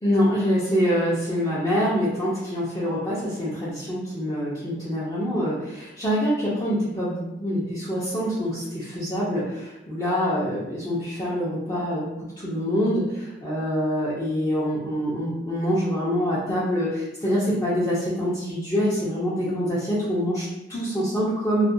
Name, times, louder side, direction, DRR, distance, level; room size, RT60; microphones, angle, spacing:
voice 1, 0.0-21.6, equal, 20° left, -10 dB, 0.5 m, -25 dB
2.3 x 2.2 x 2.6 m, 0.95 s
head